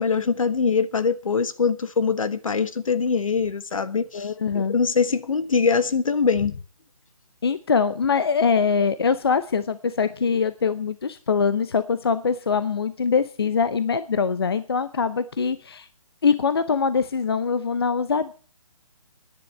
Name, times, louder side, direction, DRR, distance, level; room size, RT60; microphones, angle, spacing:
voice 1, 0.0-6.5, left 5 dB, 70° left, 1.4 m, -23 dB
voice 2, 4.1-4.7 7.4-15.9 16.2-18.3, left 5 dB, 45° left, 0.7 m, -23 dB
10.5 x 10.0 x 8.9 m
hypercardioid pair, 180°, 18 cm